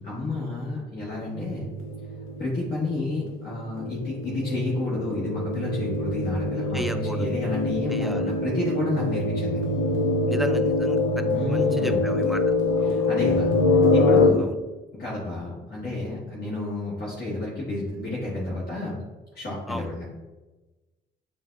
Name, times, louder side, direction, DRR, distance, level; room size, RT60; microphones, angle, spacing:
voice 1, 0.0-1.7 2.4-9.6 11.2-12.0 12.8-14.5 14.9-19.0 19.3-20.0, left 2 dB, 55° left, -7 dB, 1.4 m, -30 dB
sound 1, 1.2-14.3, left 2 dB, 90° left, 0.5 m, -25 dB
voice 2, 6.7-7.3 7.9-8.3 10.3-11.0 11.5-12.4 12.8-13.1 14.4-14.5 19.7-19.9, right 1 dB, ahead, 7 dB, 0.3 m, -33 dB
7.3 x 2.6 x 2.3 m, 1.1 s
cardioid pair, 90°, 20 cm